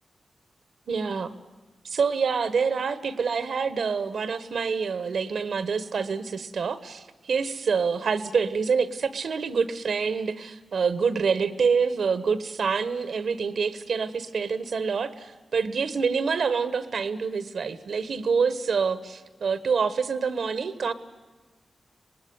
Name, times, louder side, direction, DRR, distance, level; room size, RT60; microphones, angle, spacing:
voice 1, 0.9-1.3 1.8-20.9, right 5 dB, 80° right, 12 dB, 1.2 m, -26 dB
24.5 x 19.5 x 9.5 m, 1.3 s
cardioid pair, 55°, 0 cm